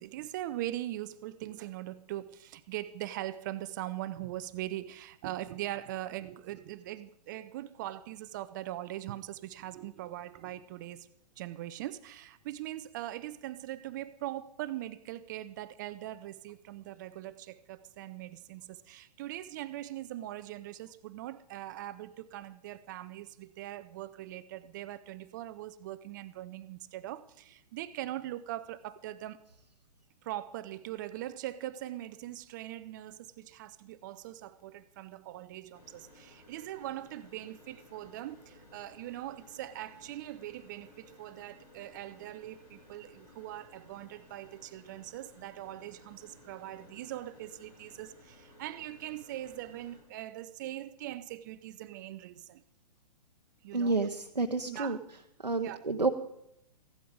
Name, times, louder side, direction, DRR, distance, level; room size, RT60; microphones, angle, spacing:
voice 1, 0.0-11.1 11.4-29.4 30.2-52.6 53.6-54.0 54.6-55.0 55.6-55.9, right 14 dB, 30° right, 0.4 m, -41 dB
sound 1, 35.7-50.0, left 1 dB, 70° left, 7.6 m, -58 dB
voice 2, 53.7-55.0 55.4-56.1, right 3 dB, 90° right, 0.8 m, -29 dB
15.0 x 12.0 x 5.1 m
figure-of-eight pair, 115°, 21 cm